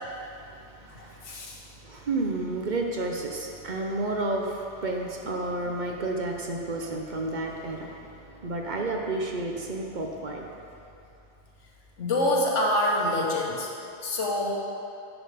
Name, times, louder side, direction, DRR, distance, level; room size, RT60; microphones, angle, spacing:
voice 1, 0.2-10.5, right 2 dB, 45° right, 1 dB, 0.7 m, -31 dB
voice 2, 0.9-1.6 12.0-13.7 14.0-14.6, left 1 dB, 85° left, -1 dB, 1.5 m, -26 dB
9.7 x 5.7 x 5.0 m, 2.8 s
omnidirectional pair, 1.2 m